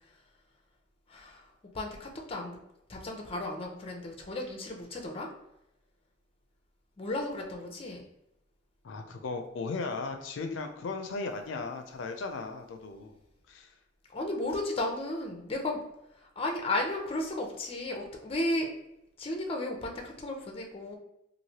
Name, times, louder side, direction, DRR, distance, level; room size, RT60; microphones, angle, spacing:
voice 1, 1.1-1.5 1.7-2.6 2.9-5.3 7.0-8.0 14.1-15.8 16.1-18.7 19.2-21.0, left 1 dB, 30° left, 2 dB, 0.5 m, -34 dB
voice 2, 8.8-13.2 13.5-13.7, left 3 dB, 85° left, 5 dB, 0.4 m, -36 dB
3.1 x 2.6 x 2.8 m, 0.82 s
head